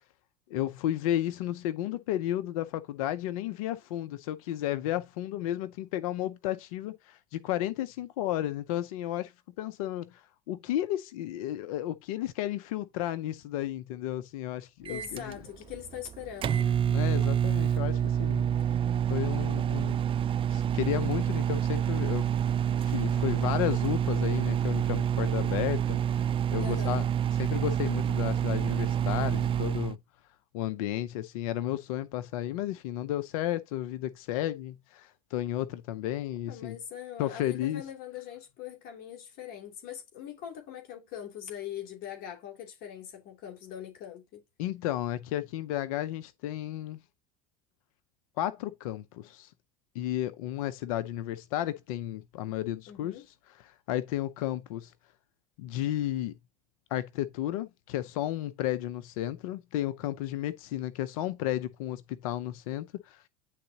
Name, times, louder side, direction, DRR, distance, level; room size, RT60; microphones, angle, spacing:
voice 1, 0.5-9.3 9.6-15.4 16.9-18.5 19.1-20.0 20.5-22.3 22.8-27.0 27.3-30.0 30.5-36.8 37.2-37.8 44.6-47.0 48.4-49.5 49.9-53.2 53.9-54.9 55.6-56.4 56.9-63.3, left 13 dB, 80° left, 0.6 m, -33 dB
voice 2, 14.9-16.8 26.6-27.0 36.5-44.4 52.9-53.3, left 9 dB, 60° left, 2.7 m, -42 dB
Microwave oven, 14.9-29.9, right 9 dB, 30° right, 0.4 m, -28 dB
10.0 x 4.0 x 2.8 m
supercardioid pair, 95°, 18 cm